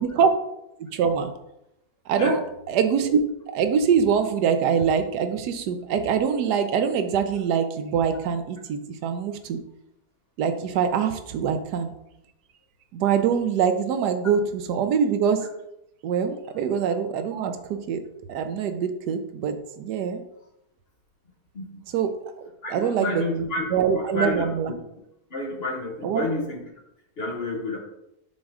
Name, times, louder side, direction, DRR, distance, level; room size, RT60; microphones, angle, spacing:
voice 1, 0.9-1.3 2.1-2.4 2.7-3.2 3.5-9.6 10.4-11.9 12.9-15.4 16.0-18.0 18.3-20.2 21.9-22.1 22.4-23.4 23.7-24.7 26.0-26.2, right 7 dB, 85° right, 8 dB, 1.3 m, -24 dB
voice 2, 22.6-24.8 25.3-26.6 27.2-27.8, left 2 dB, 45° left, 1 dB, 1.1 m, -30 dB
6.2 x 3.7 x 4.8 m, 0.84 s
omnidirectional pair, 1.7 m